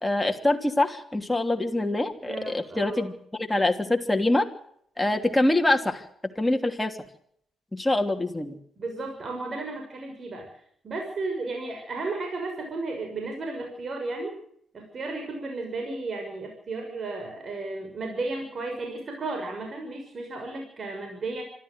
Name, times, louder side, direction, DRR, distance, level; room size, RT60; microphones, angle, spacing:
voice 1, 0.0-3.1 3.4-4.4 5.0-6.0 6.4-7.0 7.7-8.6, left 2 dB, 10° left, 4 dB, 3.0 m, -24 dB
voice 2, 2.2-3.1 8.8-10.5 10.8-14.4 14.7-21.4, right 3 dB, 50° right, 3 dB, 6.3 m, -34 dB
26.0 x 13.0 x 7.9 m, 0.67 s
hypercardioid pair, 45°, 0 cm